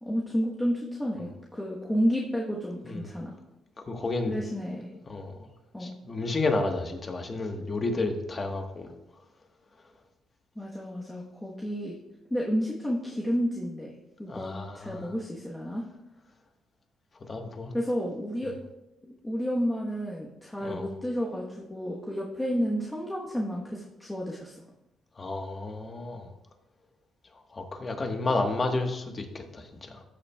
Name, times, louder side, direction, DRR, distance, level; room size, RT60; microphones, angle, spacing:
voice 1, 0.0-3.3 4.3-4.9 5.7-5.9 10.6-12.0 12.3-13.9 14.2-15.8 17.7-18.5 19.0-24.6, equal, 10° left, -3 dB, 1.2 m, -31 dB
voice 2, 3.9-4.3 4.7-4.8 5.0-5.4 5.8-8.9 14.3-15.1 17.3-17.7 20.6-20.9 25.2-26.3 27.5-30.0, left 3 dB, 35° left, 4 dB, 1.3 m, -31 dB
14.0 x 7.1 x 2.3 m, 0.93 s
cardioid pair, 90°, 0 cm